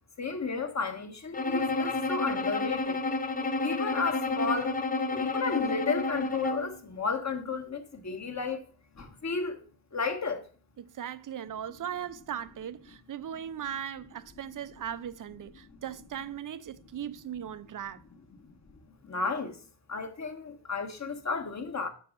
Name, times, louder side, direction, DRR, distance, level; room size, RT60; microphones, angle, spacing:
voice 1, 0.2-3.0 3.6-4.8 5.1-8.6 9.0-9.6 9.9-10.4 19.0-19.6 19.9-21.9, left 4 dB, 35° left, 1.5 m, -33 dB
Bowed string instrument, 1.3-6.8, left 3 dB, 20° left, 0.6 m, -30 dB
voice 2, 10.8-18.0, right 9 dB, 45° right, 0.6 m, -38 dB
6.2 x 4.7 x 6.4 m
cardioid pair, 75°, 46 cm